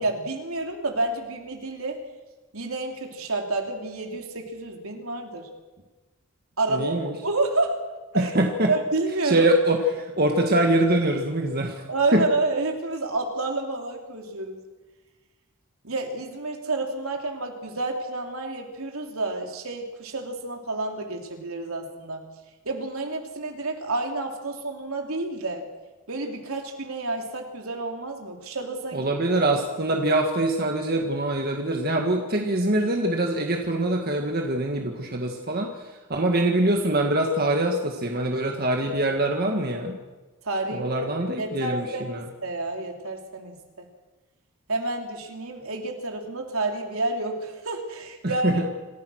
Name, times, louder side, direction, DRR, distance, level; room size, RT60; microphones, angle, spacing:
voice 1, 0.0-2.0 2.5-5.5 6.6-6.9 7.2-7.8 8.1-8.3 8.7-9.5 11.9-14.6 15.8-22.2 22.6-25.7 26.1-29.1 40.4-40.8 41.4-43.8 44.7-48.6, right 2 dB, 70° right, 3 dB, 3.4 m, -29 dB
voice 2, 6.7-7.2 8.1-8.7 9.2-11.8 12.1-12.2 28.9-40.0 40.7-42.3 48.2-48.7, right 1 dB, 45° right, 2 dB, 1.8 m, -24 dB
27.0 x 15.5 x 6.5 m, 1.2 s
head